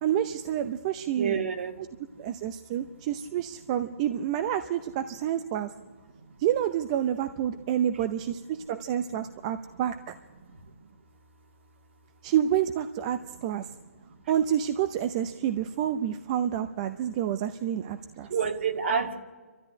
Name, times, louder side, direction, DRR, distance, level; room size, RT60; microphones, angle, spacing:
voice 1, 0.0-1.4 1.8-1.9 2.2-5.7 6.4-10.1 12.2-13.7 14.3-18.3, right 10 dB, 25° right, 10 dB, 0.7 m, -28 dB
voice 2, 1.2-1.7 18.3-19.2, right 6 dB, 55° right, 6 dB, 2.2 m, -27 dB
28.5 x 13.0 x 9.7 m, 1.4 s
hypercardioid pair, 155°, 8 cm